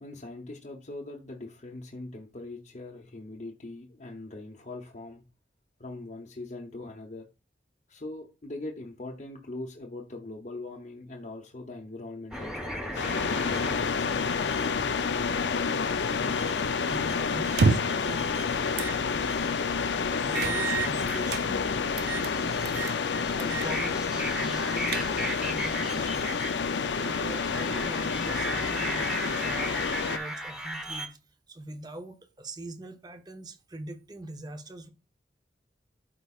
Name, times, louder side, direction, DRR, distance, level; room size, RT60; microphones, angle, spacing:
voice 1, 0.0-5.2 5.8-7.3 7.9-13.1 13.4-13.7, left 2 dB, 45° left, 0.8 m, -41 dB
sound 1, 12.3-14.7 16.2-17.5 17.8-18.7 19.1-31.1, equal, 5° right, 1.1 m, -37 dB
sound 2, 12.9-30.2, left 5 dB, 85° left, 0.6 m, -29 dB
voice 2, 16.8-18.6 19.6-19.9 20.3-21.8 22.4-22.8 23.3-26.3 26.5-26.7 27.0-31.2 31.5-34.9, right 1 dB, 25° right, 0.8 m, -42 dB
sound 3, 17.5-18.1 18.8-19.0 19.4-19.5 20.3-21.5 22.0-22.3 22.7-23.0 23.4-23.7 24.0-24.1 24.6-25.4, right 4 dB, 70° right, 0.5 m, -28 dB
12.5 x 4.7 x 2.4 m
head